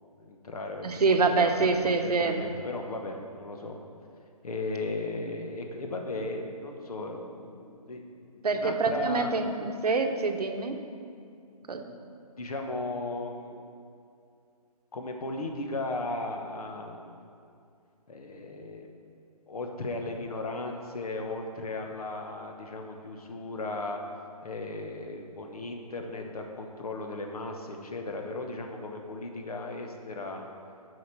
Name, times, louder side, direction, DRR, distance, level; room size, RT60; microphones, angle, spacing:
voice 1, 0.2-3.8 4.4-8.0 8.3-9.3 11.6-12.0 12.4-13.7 14.9-17.2 18.1-18.9 19.5-24.0 24.4-30.5, left 2 dB, 70° left, 3 dB, 1.2 m, -36 dB
voice 2, 0.8-2.4 8.4-10.7 11.7-11.9, right 4 dB, 80° right, 6 dB, 0.9 m, -26 dB
7.8 x 5.1 x 5.9 m, 2.4 s
hypercardioid pair, 150°, 20 cm